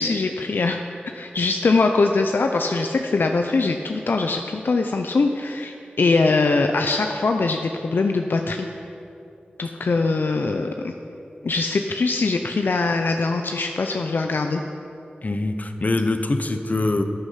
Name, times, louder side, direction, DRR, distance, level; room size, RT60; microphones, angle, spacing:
voice 1, 0.0-8.7 9.6-10.9 11.4-14.6, left 3 dB, 75° left, 4 dB, 0.6 m, -22 dB
voice 2, 15.2-17.0, left 2 dB, 50° left, 7 dB, 1.0 m, -23 dB
13.5 x 8.0 x 5.8 m, 2.7 s
cardioid pair, 45°, 4 cm